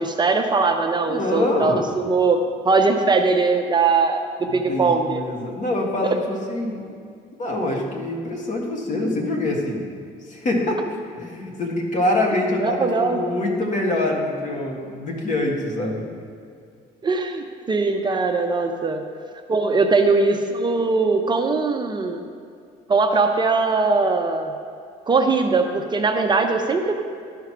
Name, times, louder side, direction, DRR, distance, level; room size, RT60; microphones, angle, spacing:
voice 1, 0.0-2.4 2.6-4.2 4.5-5.2 12.6-13.2 17.0-19.0 19.5-22.3 22.9-24.5 25.1-27.0, right 4 dB, 25° right, 5 dB, 0.6 m, -20 dB
voice 2, 1.1-1.8 4.5-6.8 7.4-9.9 10.2-10.8 11.1-16.0, left 1 dB, 45° left, 0 dB, 1.7 m, -25 dB
12.0 x 4.7 x 5.9 m, 2.3 s
cardioid pair, 115°, 17 cm